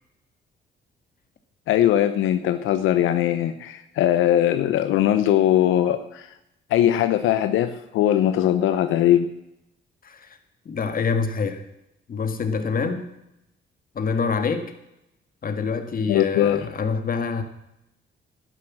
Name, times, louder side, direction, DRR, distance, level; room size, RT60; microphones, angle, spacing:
voice 1, 1.7-6.3 6.7-9.3 16.1-16.7, left 11 dB, 90° left, 10 dB, 0.8 m, -20 dB
voice 2, 10.0-10.4 10.7-11.6 12.1-13.1 13.9-14.7 15.4-17.4, left 5 dB, 45° left, 9 dB, 1.9 m, -26 dB
11.5 x 10.5 x 7.3 m, 0.84 s
cardioid pair, 90°, 20 cm